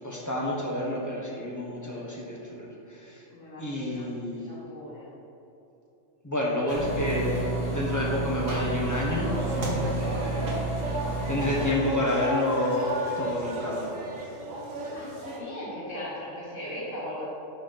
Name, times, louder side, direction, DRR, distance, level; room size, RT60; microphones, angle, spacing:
voice 1, 0.0-3.2 3.6-4.6 6.2-10.9 11.3-14.0, left 1 dB, 15° left, -4 dB, 1.1 m, -30 dB
voice 2, 3.3-4.1 4.4-5.1 14.9-17.2, left 1 dB, 70° left, -7 dB, 1.9 m, -38 dB
sound 1, 6.7-11.7, right 2 dB, 55° right, 1.9 m, -30 dB
sound 2, 9.2-15.4, right 1 dB, 85° right, 1.4 m, -33 dB
5.5 x 4.9 x 5.8 m, 2.9 s
omnidirectional pair, 1.3 m